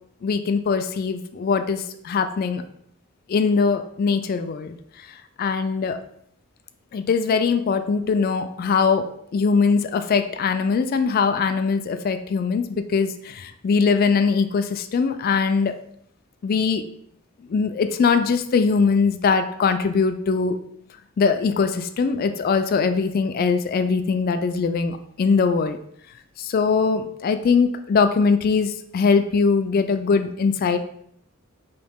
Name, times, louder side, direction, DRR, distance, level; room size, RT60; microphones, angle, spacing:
voice 1, 0.2-2.6 3.3-5.1 5.4-6.0 6.9-9.1 9.3-15.7 16.4-16.8 17.5-20.6 21.2-25.8 26.4-30.8, left 5 dB, 45° left, 9 dB, 0.3 m, -21 dB
4.0 x 2.8 x 3.5 m, 0.69 s
head